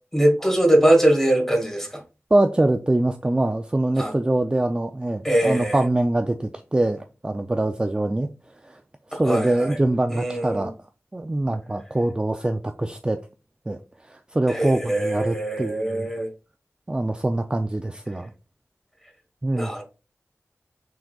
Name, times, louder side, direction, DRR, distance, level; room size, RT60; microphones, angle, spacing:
voice 1, 0.1-2.0 4.0-4.1 5.2-5.8 9.1-9.8 10.1-10.7 14.5-16.3 19.5-19.8, right 1 dB, 10° left, 1.4 m, -22 dB
voice 2, 2.3-8.3 8.6-8.8 9.1-10.7 11.1-13.2 13.7-16.1 16.9-18.3 19.4-19.7, right 1 dB, 20° right, 0.3 m, -24 dB
6.0 x 3.6 x 2.3 m
wide cardioid pair, 80°, 5 cm